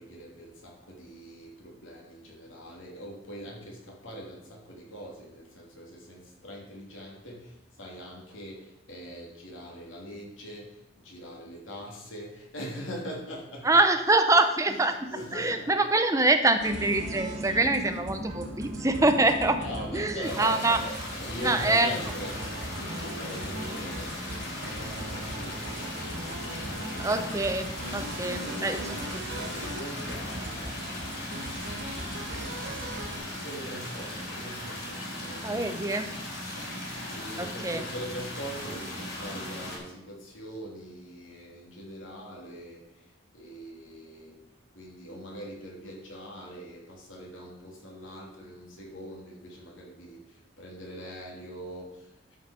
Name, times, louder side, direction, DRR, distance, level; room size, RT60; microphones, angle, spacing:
voice 1, 0.0-13.7 14.7-15.7 19.6-26.4 28.4-31.2 32.2-35.7 36.0-36.1 36.7-44.4 44.7-52.4, equal, 85° left, -2 dB, 3.1 m, -42 dB
voice 2, 13.6-19.6 19.9-20.8 21.4-21.9 27.0-28.8 29.1-29.2 35.4-36.1 37.4-37.8, right 2 dB, 15° right, 8 dB, 0.7 m, -25 dB
sound 1, 16.6-33.2, right 1 dB, 70° right, 2.3 m, -38 dB
sound 2, 20.2-39.8, left 1 dB, 55° left, 3.6 m, -38 dB
12.5 x 5.7 x 5.2 m, 0.88 s
head